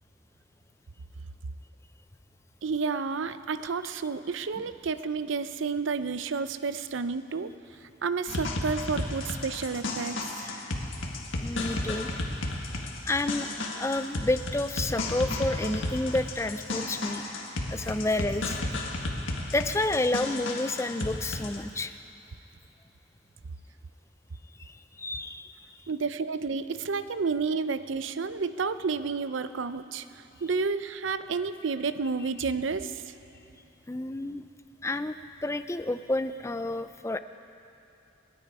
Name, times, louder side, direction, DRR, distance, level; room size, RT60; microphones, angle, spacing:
voice 1, 2.6-7.5 8.0-10.5 25.9-33.1, right 4 dB, 75° right, 12 dB, 0.6 m, -31 dB
sound 1, 8.3-21.6, left 2 dB, 85° left, 1.7 m, -33 dB
voice 2, 11.4-12.1 13.0-13.5 13.8-17.2 17.7-18.6 19.5-22.0 24.6-25.5 33.9-34.5 34.8-37.2, left 2 dB, 15° left, 10 dB, 0.4 m, -30 dB
30.0 x 10.0 x 4.8 m, 3.0 s
head